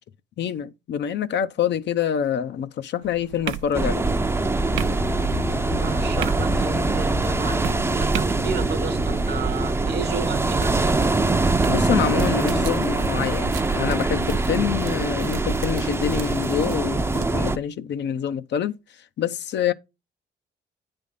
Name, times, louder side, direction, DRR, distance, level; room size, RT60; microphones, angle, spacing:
voice 1, 0.4-4.0 11.7-18.7 19.2-19.7, left 9 dB, 60° left, 0.6 m, -26 dB
sound 1, 3.0-17.3, right 10 dB, 85° right, 0.7 m, -38 dB
sound 2, 3.7-17.6, right 3 dB, 10° right, 0.5 m, -23 dB
sound 3, 4.4-16.2, left 4 dB, 20° left, 0.8 m, -36 dB
voice 2, 5.8-11.1, right 7 dB, 55° right, 0.9 m, -32 dB
9.3 x 3.5 x 5.3 m
cardioid pair, 90°, 20 cm